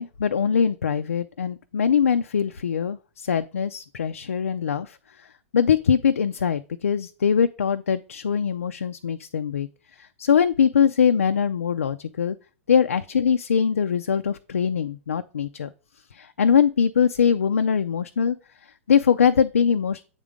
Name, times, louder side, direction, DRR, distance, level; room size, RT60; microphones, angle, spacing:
voice 1, 0.0-5.3 5.5-9.7 10.0-12.4 12.7-15.7 16.1-18.4 18.6-20.0, left 7 dB, 80° left, 8 dB, 0.4 m, -22 dB
7.9 x 3.7 x 5.0 m, 0.37 s
hypercardioid pair, 110°, 7 cm